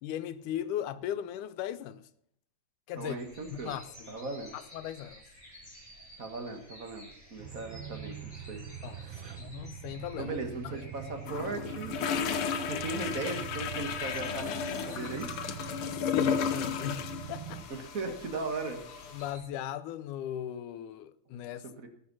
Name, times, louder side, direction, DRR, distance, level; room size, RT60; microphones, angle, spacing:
voice 1, 0.0-2.1 2.9-3.2 3.5-4.3 4.5-5.2 8.8-9.1 9.4-10.4 10.6-10.9 15.8-17.6 18.0-18.1 19.1-21.7, left 11 dB, 85° left, 2.2 m, -38 dB
voice 2, 2.9-3.8 4.1-4.5 6.2-8.6 8.9-9.5 10.2-12.0 12.4-15.3 17.7-18.8 21.8-21.9, right 3 dB, 35° right, 1.6 m, -38 dB
sound 1, 3.0-19.5, equal, 5° right, 4.5 m, -54 dB
sound 2, 7.4-17.6, right 8 dB, 85° right, 2.7 m, -44 dB
sound 3, 11.3-19.3, left 7 dB, 65° left, 1.4 m, -34 dB
19.0 x 7.0 x 6.3 m
omnidirectional pair, 3.5 m